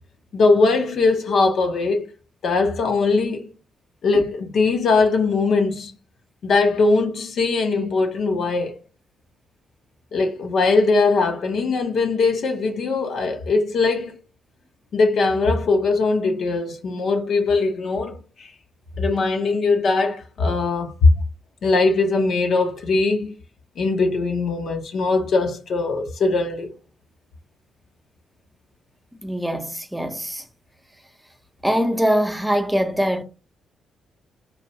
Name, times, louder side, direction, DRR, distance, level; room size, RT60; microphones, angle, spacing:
voice 1, 0.3-2.1 2.4-3.5 4.0-5.9 6.4-8.7 10.1-14.2 14.9-18.5 19.0-21.1 21.6-23.3 23.8-26.7, left 3 dB, 60° left, 0.6 m, -20 dB
voice 2, 29.2-30.4 31.6-33.2, equal, 5° right, 0.6 m, -22 dB
3.1 x 2.2 x 2.7 m
hypercardioid pair, 45°, 0 cm